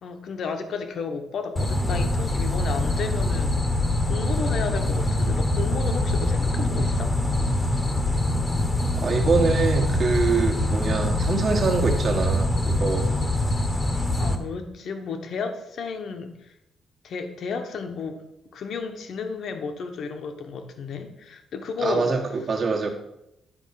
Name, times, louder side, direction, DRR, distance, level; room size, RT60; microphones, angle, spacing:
voice 1, 0.0-3.6 4.1-7.1 14.2-16.5 17.0-18.2 18.5-22.1, left 5 dB, 60° left, 6 dB, 1.1 m, -32 dB
sound 1, 1.6-14.4, left 1 dB, 15° left, 1.0 m, -24 dB
voice 2, 9.0-13.1 21.8-22.9, right 4 dB, 45° right, 2 dB, 1.4 m, -24 dB
9.9 x 4.3 x 5.8 m, 0.85 s
cardioid pair, 130°, 0 cm